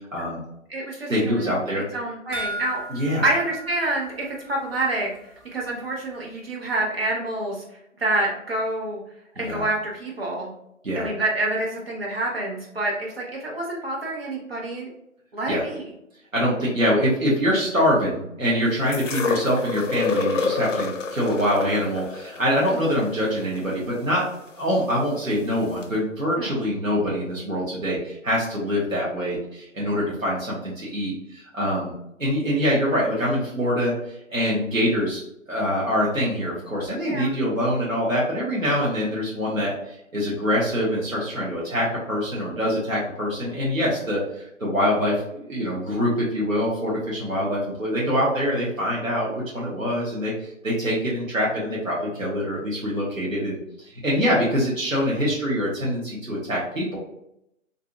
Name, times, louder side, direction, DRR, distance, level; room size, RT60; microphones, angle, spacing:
voice 1, 0.1-0.4 1.1-1.8 2.9-3.3 9.4-9.7 10.8-11.1 15.5-15.6 16.3-24.3 24.6-31.9 32.2-33.9 34.3-35.2 35.5-57.0, equal, 85° right, -6 dB, 1.0 m, -24 dB
voice 2, 0.7-1.5 1.9-2.8 3.2-5.1 5.5-7.6 8.0-9.0 9.4-10.5 11.0-14.9 15.3-15.9 26.4-26.7 37.0-37.3, right 2 dB, 50° right, -2 dB, 0.7 m, -27 dB
sound 1, 2.3-4.9 5.2-5.3 5.7-5.8, right 1 dB, 65° right, 1.1 m, -36 dB
pouring bier, 18.9-25.0 25.8-25.9, left 4 dB, 70° left, 0.5 m, -29 dB
2.6 x 2.6 x 2.4 m, 0.80 s
figure-of-eight pair, 145°, 39 cm